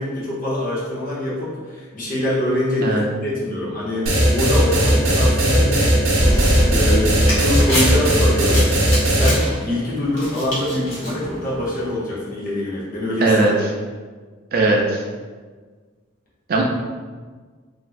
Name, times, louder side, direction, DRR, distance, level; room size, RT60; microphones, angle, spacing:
voice 1, 0.0-6.0 6.2-8.7 9.0-13.3, left 1 dB, 45° left, -7 dB, 0.8 m, -24 dB
sound 1, 4.1-9.3, right 1 dB, 85° right, 0.7 m, -17 dB
sound 2, 6.2-8.9, equal, 30° left, 1.2 m, -24 dB
sound 3, 6.8-11.9, left 1 dB, 90° left, 1.0 m, -29 dB
voice 2, 13.2-13.5 14.5-15.0 16.5-16.6, right 2 dB, 50° right, 0 dB, 0.4 m, -18 dB
2.9 x 2.6 x 2.4 m, 1.5 s
head